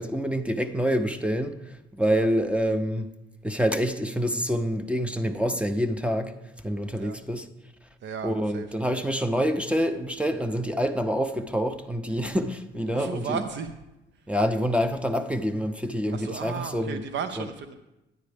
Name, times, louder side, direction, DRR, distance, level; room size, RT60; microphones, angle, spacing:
voice 1, 0.0-3.1 3.4-6.3 6.6-7.5 8.2-13.4 14.3-17.0 17.4-17.5, equal, 5° right, 0.6 m, -27 dB
voice 2, 8.0-8.7 12.9-13.7 16.1-17.7, right 6 dB, 70° right, 0.6 m, -34 dB
9.3 x 9.3 x 3.4 m
cardioid pair, 90°, 20 cm